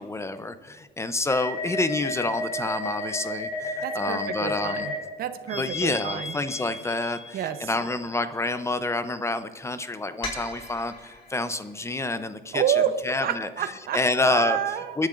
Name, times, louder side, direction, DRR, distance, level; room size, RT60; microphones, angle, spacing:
voice 1, 0.0-4.9 5.6-13.5 13.9-14.6 15.0-15.1, left 2 dB, 15° left, 11 dB, 0.6 m, -28 dB
sound 1, 1.3-5.0 5.5-7.7 10.2-11.3, left 2 dB, 35° left, 4.5 m, -33 dB
voice 2, 3.8-4.9 5.2-6.3 7.3-7.6 12.5-12.9 13.2-14.0 14.2-15.0, right 10 dB, 65° right, 10 dB, 0.8 m, -28 dB
27.5 x 10.5 x 2.5 m, 1.5 s
cardioid pair, 110°, 17 cm